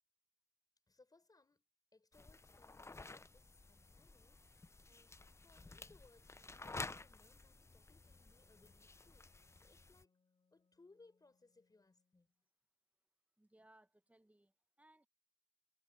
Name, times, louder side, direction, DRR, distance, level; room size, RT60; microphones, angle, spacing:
voice 1, 0.9-1.6 1.9-10.2 10.5-12.3, left 3 dB, 50° left, 4.8 m, -69 dB
sound 1, 2.1-10.0, left 3 dB, 35° left, 0.5 m, -53 dB
Wind instrument woodwind instrument, 8.1-12.5, left 4 dB, 90° left, 2.6 m, -81 dB
voice 2, 13.4-15.1, right 1 dB, 15° right, 1.1 m, -68 dB
wide cardioid pair, 55°, 8 cm